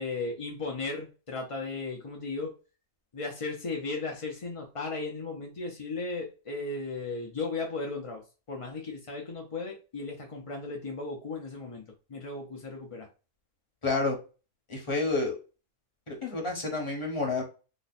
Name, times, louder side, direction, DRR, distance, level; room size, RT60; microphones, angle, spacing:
voice 1, 0.0-2.5 3.1-8.2 8.5-11.8 12.1-13.1, left 3 dB, 50° left, 1 dB, 0.4 m, -36 dB
voice 2, 13.8-14.2 14.7-15.3 16.1-17.4, left 3 dB, 25° left, 0 dB, 1.1 m, -29 dB
3.1 x 2.2 x 4.1 m, 0.33 s
omnidirectional pair, 1.5 m